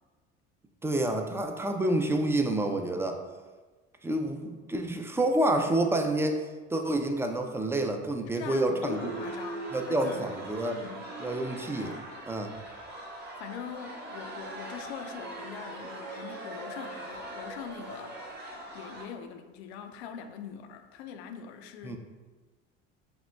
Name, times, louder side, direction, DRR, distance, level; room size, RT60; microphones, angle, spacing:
voice 1, 0.8-3.2 4.0-9.1 9.7-10.8 11.2-12.0 12.3-12.5 21.8-22.0, right 1 dB, 10° right, 4 dB, 0.3 m, -28 dB
voice 2, 8.3-10.3 10.7-11.1 13.4-22.0, left 8 dB, 80° left, 8 dB, 0.5 m, -42 dB
sound 1, 8.9-19.0, right 2 dB, 30° right, 1.1 m, -41 dB
5.0 x 2.8 x 2.2 m, 1.3 s
hypercardioid pair, 75°, 32 cm